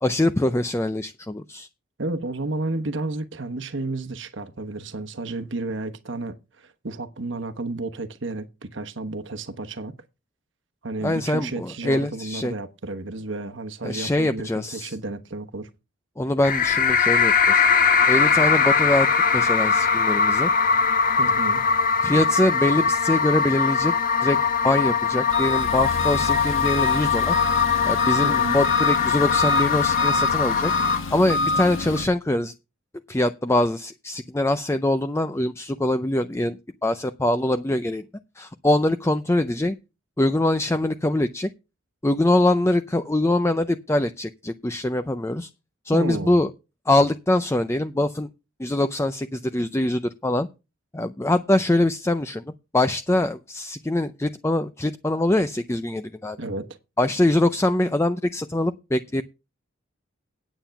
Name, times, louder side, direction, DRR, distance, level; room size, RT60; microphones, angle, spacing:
voice 1, 0.0-1.7 11.0-12.5 13.8-15.0 16.2-17.6 18.1-19.1 19.3-20.5 22.0-23.9 24.2-24.4 24.6-27.4 27.8-30.7 31.1-32.5 33.1-38.0 38.4-39.8 40.2-41.5 42.0-45.5 45.8-46.5 46.9-48.3 48.6-50.5 50.9-52.4 52.7-56.4 57.0-59.2, left 1 dB, 15° left, 0.5 m, -23 dB
voice 2, 2.0-9.9 10.8-15.7 21.2-21.6 28.2-28.6 45.9-46.4 56.4-56.7, right 2 dB, 60° right, 1.1 m, -32 dB
sound 1, 16.4-31.0, left 6 dB, 40° left, 1.2 m, -21 dB
Engine, 25.3-32.0, left 2 dB, 75° left, 1.4 m, -27 dB
9.1 x 9.0 x 5.8 m
head